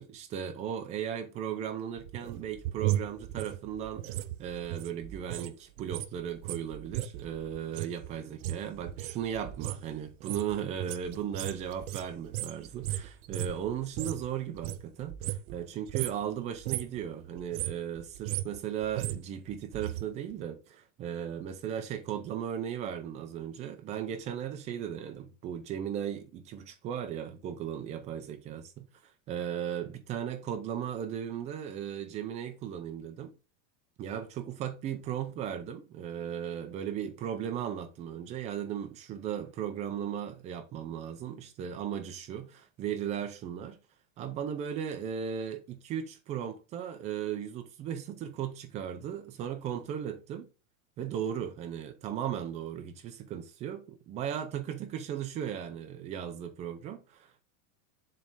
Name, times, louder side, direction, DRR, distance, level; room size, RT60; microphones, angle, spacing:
voice 1, 0.0-4.0 4.4-28.9 29.3-33.3 34.0-43.8 44.2-50.5 51.0-57.4, right 9 dB, 15° right, 0.4 m, -36 dB
sound 1, 2.0-5.5 5.8-14.3 14.5-15.6 15.9-16.2 16.5-17.0 17.4-20.0 20.3-20.4, right 14 dB, 75° right, 0.7 m, -36 dB
7.4 x 3.3 x 4.0 m
supercardioid pair, 170°, 45 cm